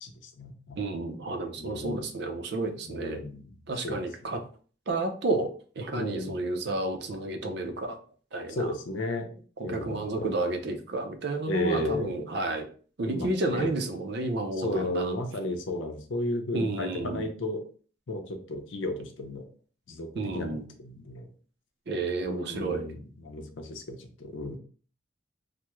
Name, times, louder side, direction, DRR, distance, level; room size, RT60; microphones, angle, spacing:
voice 1, 0.0-0.8 1.6-2.1 2.9-3.5 3.8-4.0 5.9-6.4 8.5-9.3 9.6-10.3 11.5-12.2 13.1-13.7 14.6-17.6 18.1-19.4 19.9-21.3 22.2-24.6, left 1 dB, 85° left, 5 dB, 0.6 m, -34 dB
voice 2, 0.8-3.2 3.7-4.4 4.9-8.0 8.3-8.7 9.6-12.7 13.0-15.2 16.5-17.3 20.1-20.7 21.9-22.9, right 2 dB, 60° right, 6 dB, 0.5 m, -31 dB
3.4 x 2.1 x 3.0 m, 0.41 s
head